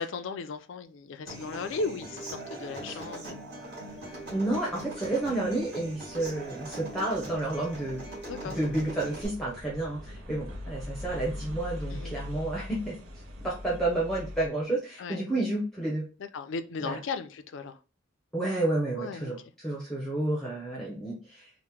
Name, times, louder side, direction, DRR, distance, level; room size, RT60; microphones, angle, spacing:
voice 1, 0.0-3.4 8.3-8.6 11.9-12.2 15.0-15.2 16.2-17.8 19.0-19.3, left 4 dB, 60° left, 0.3 m, -36 dB
Human voice / Acoustic guitar, 1.3-9.3, right 1 dB, 50° right, 1.4 m, -41 dB
sound 1, 3.8-14.5, left 1 dB, 80° right, 0.7 m, -43 dB
voice 2, 4.3-8.0 8.4-13.0 13.4-16.1 16.8-17.0 18.3-21.5, right 2 dB, ahead, 0.6 m, -30 dB
2.9 x 2.0 x 3.4 m
head